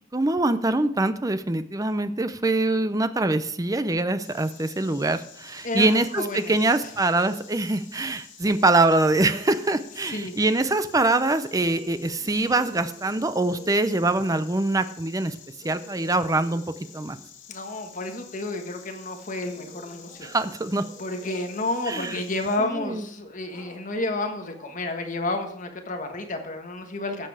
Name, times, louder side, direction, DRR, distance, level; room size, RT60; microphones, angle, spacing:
voice 1, 0.1-15.4 15.6-16.6 16.9-17.2 20.2-20.8 21.9-22.2 22.6-23.0, right 2 dB, 20° right, 11 dB, 0.6 m, -24 dB
Insect, 4.2-22.6, left 8 dB, 70° left, 2.2 m, -49 dB
voice 2, 5.6-6.6 10.0-10.4 17.5-20.3 21.0-27.3, left 2 dB, 40° left, 5 dB, 1.4 m, -31 dB
sound 1, 11.6-14.0 15.6-17.2 19.4-21.7 23.4-25.0, right 1 dB, 40° right, 3.1 m, -50 dB
13.0 x 7.7 x 4.9 m, 0.64 s
head